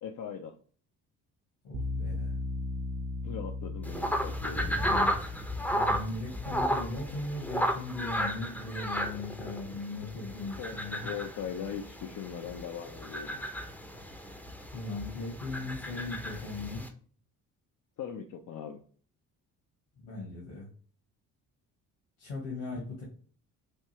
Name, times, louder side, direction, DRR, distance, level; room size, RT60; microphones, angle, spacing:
voice 1, 0.0-0.5 3.2-4.8 10.6-13.4 18.0-18.8, left 8 dB, 40° left, 3 dB, 0.6 m, -40 dB
voice 2, 1.6-2.3 4.8-5.1 5.7-11.1 14.7-16.8 20.0-20.7 22.2-23.0, left 3 dB, 60° left, -4 dB, 1.5 m, -38 dB
sound 1, 1.7-10.6, left 2 dB, 25° right, 0.3 m, -39 dB
sound 2, 3.8-16.9, equal, 5° left, 0.7 m, -34 dB
3.5 x 2.6 x 2.8 m, 0.43 s
hypercardioid pair, 50°, 48 cm